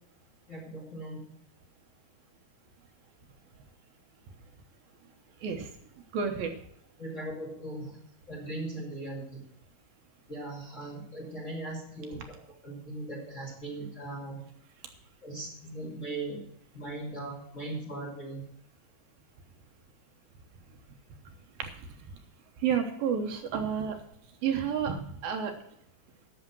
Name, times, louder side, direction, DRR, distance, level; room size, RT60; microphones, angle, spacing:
voice 1, 0.5-1.3 7.0-8.0 8.3-9.4 10.3-12.2 12.6-14.4 15.2-16.4 16.7-18.4, right 2 dB, 25° left, 0 dB, 2.0 m, -39 dB
voice 2, 6.1-6.5 21.6-21.7 22.6-24.0 24.4-25.5, right 7 dB, 75° right, 5 dB, 2.8 m, -30 dB
11.5 x 7.0 x 6.1 m, 0.72 s
omnidirectional pair, 4.4 m